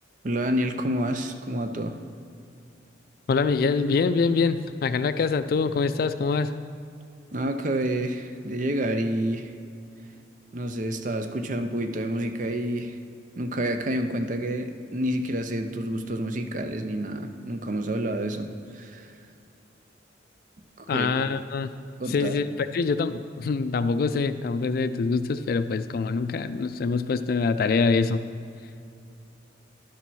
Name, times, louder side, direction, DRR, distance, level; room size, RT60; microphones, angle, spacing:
voice 1, 0.2-2.0 7.3-9.5 10.5-13.0 13.4-18.5 18.7-19.1 20.8-21.1 22.0-22.4, right 1 dB, 45° right, 7 dB, 0.5 m, -28 dB
voice 2, 3.3-6.5 20.9-21.7 22.1-28.2, left 4 dB, 50° left, 11 dB, 0.3 m, -24 dB
11.0 x 4.2 x 6.2 m, 2.5 s
head